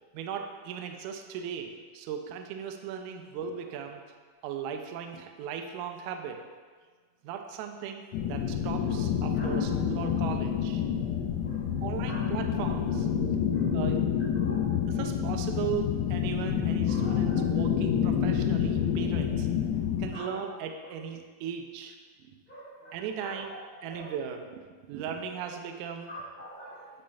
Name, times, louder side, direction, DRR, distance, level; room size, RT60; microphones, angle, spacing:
voice 1, 0.1-4.0 4.4-6.4 7.2-10.8 11.8-13.1 13.7-14.1 14.3-14.5 14.9-19.5 20.0-22.3 22.9-23.5 23.8-24.6 24.9-26.1, right 7 dB, 85° right, 5 dB, 1.7 m, -37 dB
sound 1, 8.1-20.1, left 8 dB, 85° left, 2.3 m, -28 dB
voice 2, 9.3-10.1 11.4-11.7 12.0-12.3 12.5-12.7 13.5-13.7 14.3-14.8 16.8-17.4 20.1-20.5 22.5-24.2 26.1-26.9, equal, 45° left, -12 dB, 1.2 m, -45 dB
10.0 x 4.3 x 2.3 m, 1.5 s
omnidirectional pair, 4.1 m